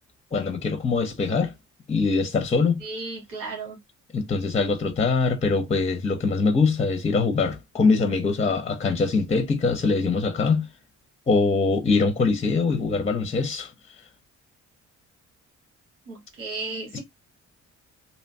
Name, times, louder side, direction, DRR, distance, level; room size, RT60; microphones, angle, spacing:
voice 1, 0.3-1.5 1.9-2.8 4.1-10.7 11.3-13.7 16.9-17.0, left 4 dB, 20° left, 0.6 m, -23 dB
voice 2, 2.8-3.8 16.1-17.0, right 3 dB, 90° right, 1.4 m, -34 dB
2.8 x 2.1 x 2.6 m
cardioid pair, 90°, 30 cm